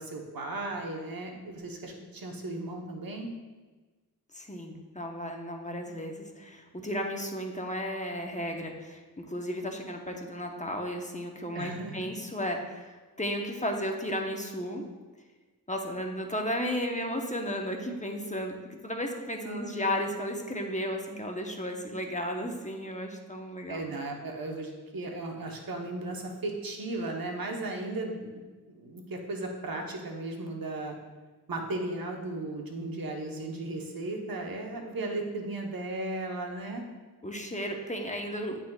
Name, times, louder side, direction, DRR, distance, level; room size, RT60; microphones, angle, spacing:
voice 1, 0.0-3.3 11.5-12.1 19.4-20.1 23.7-28.3 28.7-30.9 31.5-36.8, right 2 dB, 65° right, 2 dB, 1.1 m, -36 dB
voice 2, 4.3-14.9 15.7-23.8 37.2-38.6, equal, 20° left, 2 dB, 1.0 m, -34 dB
10.0 x 4.1 x 2.4 m, 1.3 s
cardioid pair, 45°, 37 cm